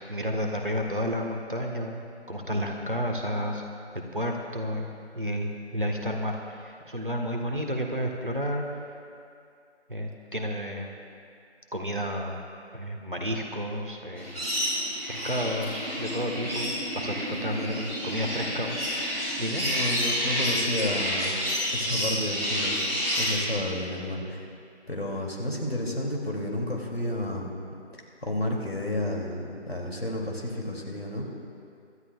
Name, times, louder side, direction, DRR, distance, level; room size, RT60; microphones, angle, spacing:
voice 1, 0.1-3.6 4.1-4.9 5.1-8.6 9.9-10.9 11.7-12.4 12.7-14.3 15.1-18.8 19.4-19.6, equal, 45° right, 1 dB, 1.4 m, -31 dB
sound 1, 14.2-23.3, equal, 15° left, 3.5 m, -29 dB
voice 2, 17.5-17.9 19.6-21.4 21.7-24.5 24.9-27.5 27.9-31.3, left 1 dB, 60° left, -1 dB, 2.7 m, -31 dB
26.0 x 13.0 x 2.4 m, 2.4 s
figure-of-eight pair, 175°, 35 cm